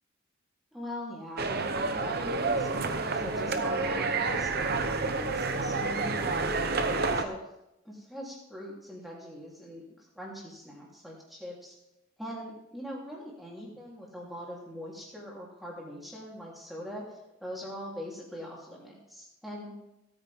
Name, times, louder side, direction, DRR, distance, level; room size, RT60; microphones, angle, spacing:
voice 1, 0.7-6.7 7.1-7.4 7.8-11.7 12.2-19.7, equal, ahead, -5 dB, 3.2 m, -42 dB
sound 1, 1.4-7.2, right 3 dB, 45° right, 0.8 m, -29 dB
17.0 x 9.1 x 3.6 m, 0.90 s
head